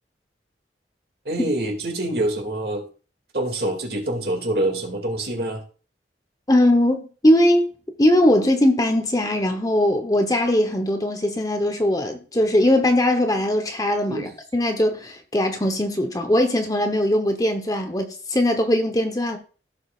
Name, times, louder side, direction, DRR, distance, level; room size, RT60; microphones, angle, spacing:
voice 1, 1.3-2.9 3.3-5.6 14.1-14.3, right 1 dB, 60° right, 2.3 m, -25 dB
voice 2, 6.5-7.7 8.0-19.4, left 1 dB, 20° left, 0.9 m, -20 dB
15.5 x 6.4 x 2.4 m
head